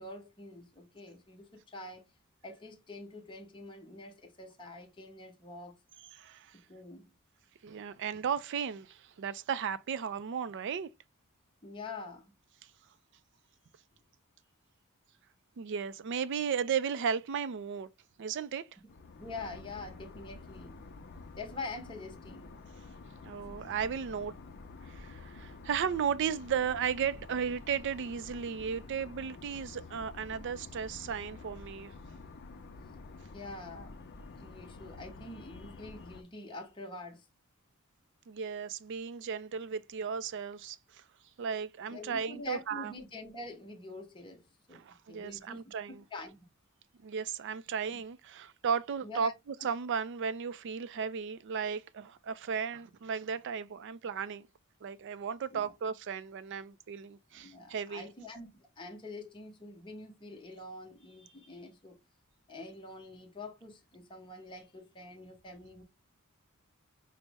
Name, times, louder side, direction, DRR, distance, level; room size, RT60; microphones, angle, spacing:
voice 1, 0.0-2.0 2.4-5.7 6.5-7.1 11.6-12.3 19.2-20.8 21.4-22.6 33.3-34.0 34.4-37.2 41.9-45.6 45.9-46.4 47.9-48.0 49.0-49.3 55.5-55.7 57.3-58.5 58.8-62.0 62.5-65.8, left 2 dB, 20° left, 0.8 m, -45 dB
voice 2, 6.1-6.6 7.6-10.9 15.6-17.9 18.2-18.7 23.2-24.3 24.9-31.9 38.3-41.0 41.4-42.9 44.7-46.0 47.0-49.3 49.6-54.5 54.8-58.1, right 7 dB, 55° right, 0.4 m, -35 dB
sound 1, 18.9-36.2, left 3 dB, 45° left, 0.5 m, -49 dB
5.2 x 2.0 x 3.4 m
head